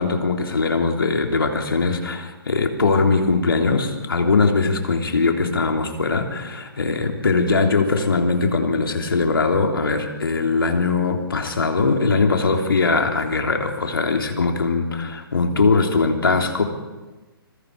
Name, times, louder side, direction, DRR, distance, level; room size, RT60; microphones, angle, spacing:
voice 1, 0.0-16.6, left 4 dB, 70° left, 3 dB, 3.4 m, -21 dB
26.5 x 22.0 x 4.9 m, 1.2 s
figure-of-eight pair, 130°, 13 cm